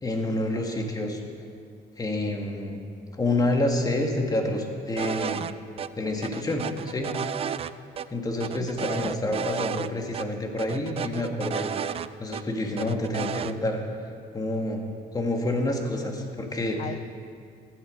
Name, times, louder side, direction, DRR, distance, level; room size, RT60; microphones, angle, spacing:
voice 1, 0.0-1.2 2.0-2.8 3.1-5.4 6.0-7.1 8.1-13.8 14.3-14.8 15.1-16.8, left 1 dB, 20° left, 2 dB, 1.9 m, -28 dB
sound 1, 5.0-5.5 5.8-5.9 6.2-7.7 8.0-8.1 8.4-9.9 10.1-10.3 10.6-12.4 12.8-13.5, right 8 dB, 35° right, 0.4 m, -32 dB
voice 2, 8.6-9.5 16.8-17.0, left 9 dB, 45° left, 11 dB, 0.5 m, -38 dB
15.0 x 11.0 x 5.2 m, 2.3 s
cardioid pair, 110°, 17 cm